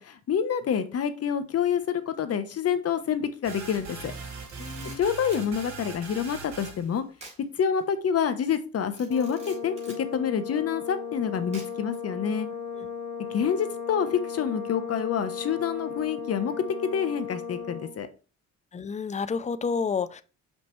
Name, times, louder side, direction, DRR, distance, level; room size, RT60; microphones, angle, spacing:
voice 1, 0.0-4.1 5.0-7.0 7.5-12.5 13.2-16.5 16.8-18.1, left 7 dB, 50° left, 0.9 m, -27 dB
sound 1, 3.4-6.9, right 4 dB, 60° right, 2.4 m, -40 dB
Camera, 4.3-5.5 7.2-7.4 7.8-7.9 8.9-10.0 11.5-11.9, right 2 dB, 20° right, 3.4 m, -48 dB
voice 2, 4.6-5.0 12.8-12.9 18.7-20.2, left 5 dB, 25° left, 0.5 m, -30 dB
Brass instrument, 9.1-18.0, left 6 dB, 80° left, 1.8 m, -36 dB
5.6 x 5.4 x 3.1 m
cardioid pair, 90°, 30 cm